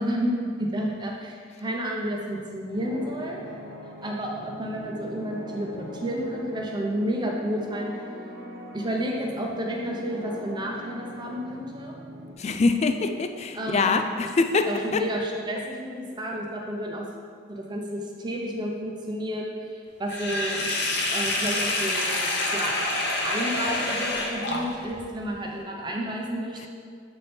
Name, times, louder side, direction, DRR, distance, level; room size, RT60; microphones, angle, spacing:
voice 1, 0.0-3.4 4.0-8.0 8.7-12.0 13.5-14.0 14.6-17.1 17.5-20.7 21.1-22.8 23.2-26.7, equal, 25° right, -1 dB, 0.8 m, -31 dB
sound 1, 2.7-12.3, equal, 85° right, 1.3 m, -42 dB
voice 2, 12.4-14.7 14.9-15.0, left 4 dB, 35° left, 7 dB, 0.4 m, -24 dB
Sink (filling or washing), 20.1-25.0, left 2 dB, 60° left, 0.8 m, -27 dB
7.9 x 4.3 x 3.4 m, 2.1 s
head